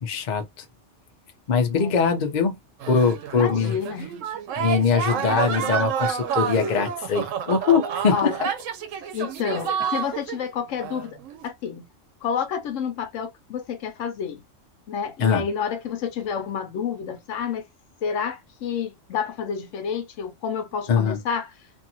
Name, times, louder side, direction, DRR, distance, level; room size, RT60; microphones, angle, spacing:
voice 1, 0.0-0.5 1.5-2.6 2.9-3.8 4.6-8.5 15.2-15.5 20.9-21.2, left 6 dB, 45° left, 0.7 m, -22 dB
sound 1, 2.8-10.5 10.8-11.4, right 8 dB, 90° right, 1.0 m, -29 dB
voice 2, 3.4-4.1 8.1-8.4 9.1-11.2 11.4-11.9 12.2-14.4 14.9-17.6 18.0-21.5, left 7 dB, 80° left, 1.0 m, -29 dB
2.7 x 2.5 x 2.6 m
omnidirectional pair, 1.3 m